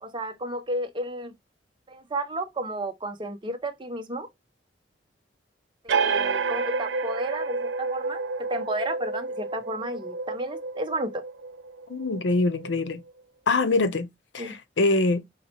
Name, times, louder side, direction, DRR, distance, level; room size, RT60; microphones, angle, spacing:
voice 1, 0.0-1.3 1.9-4.3 5.8-11.2 14.4-14.6, right 1 dB, 30° right, 0.8 m, -32 dB
sound 1, 5.9-13.1, right 4 dB, 90° right, 0.5 m, -30 dB
voice 2, 11.9-13.0 13.5-14.1 14.3-15.2, left 3 dB, 90° left, 0.6 m, -24 dB
4.2 x 3.1 x 2.9 m
head